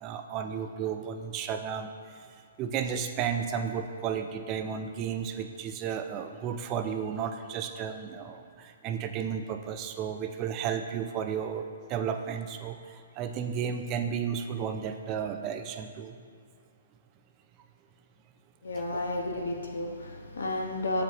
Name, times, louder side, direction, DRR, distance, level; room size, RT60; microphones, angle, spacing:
voice 1, 0.0-1.9 2.6-16.2 18.9-19.0, right 7 dB, 30° right, 7 dB, 0.4 m, -33 dB
voice 2, 18.6-21.0, left 2 dB, 85° left, 2 dB, 0.9 m, -32 dB
7.1 x 4.9 x 3.0 m, 2.2 s
hypercardioid pair, 140°, 0 cm